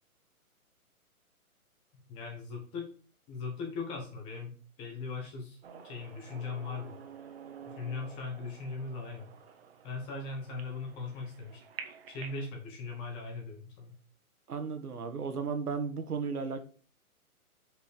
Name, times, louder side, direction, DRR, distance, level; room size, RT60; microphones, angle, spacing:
voice 1, 2.1-2.9 3.3-5.6 5.8-7.0 7.7-9.3 9.8-11.6 12.1-13.9, left 4 dB, 10° left, 2 dB, 1.0 m, -39 dB
sound 1, 5.6-12.5, right 7 dB, 45° right, 1.4 m, -49 dB
voice 2, 14.5-16.6, right 5 dB, 85° right, 8 dB, 1.6 m, -34 dB
6.2 x 5.6 x 5.1 m, 0.39 s
hypercardioid pair, 155°, 44 cm